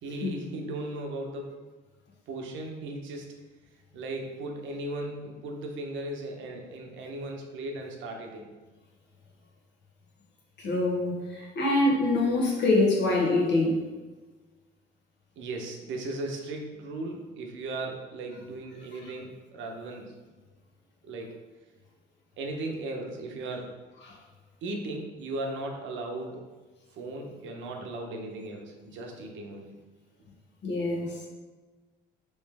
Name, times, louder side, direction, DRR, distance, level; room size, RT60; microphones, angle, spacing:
voice 1, 0.0-1.6 2.3-3.4 3.9-8.5 15.4-20.1 21.0-21.3 22.4-23.7 24.6-26.4 26.9-29.8, right 2 dB, 70° right, 2 dB, 0.8 m, -37 dB
voice 2, 10.6-13.8 30.6-31.3, left 2 dB, 60° left, -2 dB, 1.1 m, -25 dB
3.1 x 3.1 x 3.4 m, 1.3 s
supercardioid pair, 70°, 21 cm